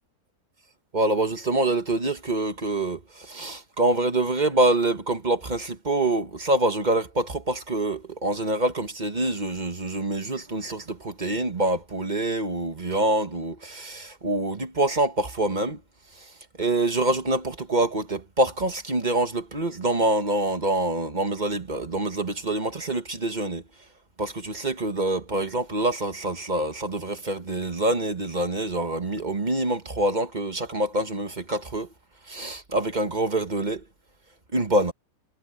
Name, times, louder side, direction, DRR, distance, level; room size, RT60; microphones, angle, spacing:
voice 1, 0.9-15.8 16.6-23.6 24.2-31.9 32.3-33.8 34.5-34.9, right 2 dB, 30° right, 1.3 m, -26 dB
omnidirectional pair, 1.7 m